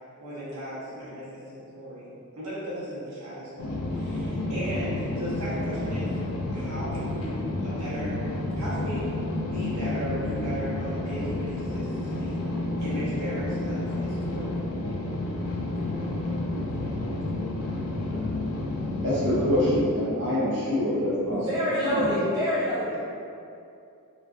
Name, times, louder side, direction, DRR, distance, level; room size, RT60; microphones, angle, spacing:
voice 1, 0.2-6.1 6.5-8.2 8.5-9.2 9.5-12.4 12.8-14.6, equal, 85° right, -10 dB, 0.9 m, -36 dB
sound 1, 3.6-19.8, left 2 dB, 70° left, 0.3 m, -30 dB
voice 2, 19.0-21.4 21.9-22.1, equal, 55° right, -10 dB, 0.9 m, -25 dB
voice 3, 21.3-23.0, equal, 20° right, -10 dB, 0.5 m, -26 dB
2.4 x 2.4 x 2.3 m, 2.5 s
head